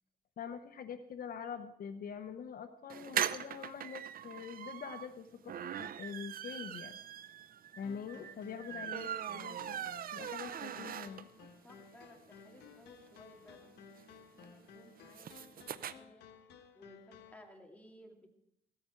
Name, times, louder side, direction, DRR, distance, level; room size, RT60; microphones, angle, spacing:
voice 1, 0.4-7.0 7.8-11.3, left 7 dB, 60° left, 9 dB, 0.8 m, -45 dB
sound 1, 2.9-11.5 11.9-12.0 12.2-12.3 12.5-15.9, right 9 dB, 60° right, 0.6 m, -41 dB
sound 2, 7.8-17.4, left 6 dB, 85° left, 1.4 m, -57 dB
voice 2, 8.6-9.1 11.6-13.7 14.4-16.3 16.8-18.3, left 1 dB, 10° left, 2 dB, 2.4 m, -58 dB
15.5 x 13.5 x 4.5 m, 0.76 s
cardioid pair, 105°, 17 cm